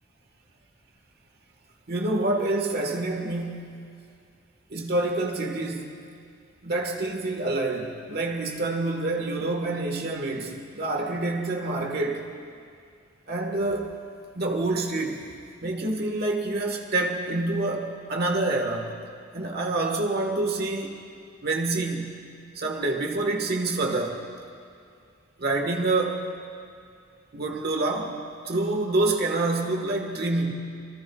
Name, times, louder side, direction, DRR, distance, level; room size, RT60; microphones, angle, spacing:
voice 1, 1.9-3.8 4.7-5.9 6.6-12.3 13.3-14.0 14.3-15.3 15.6-19.0 19.3-21.0 21.4-22.2 22.5-24.3 25.4-26.3 27.3-30.5, right 2 dB, 50° right, 2 dB, 1.5 m, -27 dB
28.0 x 20.5 x 2.4 m, 2.4 s
head